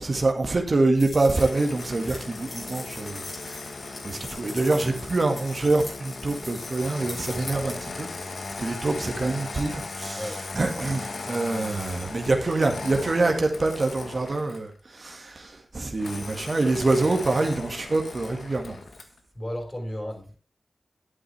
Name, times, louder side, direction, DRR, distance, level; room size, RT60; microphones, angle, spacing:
voice 1, 0.0-18.8, right 2 dB, 55° right, 3 dB, 1.9 m, -26 dB
sound 1, 1.0-7.7, left 1 dB, 45° left, 6.0 m, -42 dB
Engine starting, 1.3-14.7 16.0-19.2, left 3 dB, 75° left, 1.4 m, -38 dB
voice 2, 19.3-20.4, equal, 30° left, 1 dB, 6.1 m, -34 dB
11.5 x 8.6 x 3.4 m, 0.38 s
cardioid pair, 45°, 0 cm